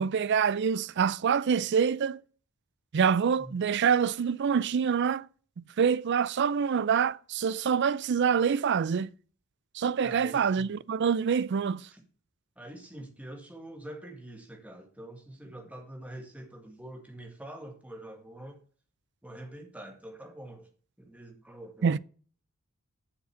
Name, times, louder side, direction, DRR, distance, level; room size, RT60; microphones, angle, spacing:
voice 1, 0.0-2.2 2.9-5.3 5.6-9.1 9.7-11.9 21.8-22.0, right 6 dB, 55° right, 0.4 m, -26 dB
voice 2, 10.0-10.7 11.9-12.0 12.6-18.6 19.2-20.7 21.0-21.9, right 1 dB, 5° right, 1.9 m, -45 dB
7.6 x 6.8 x 6.8 m
head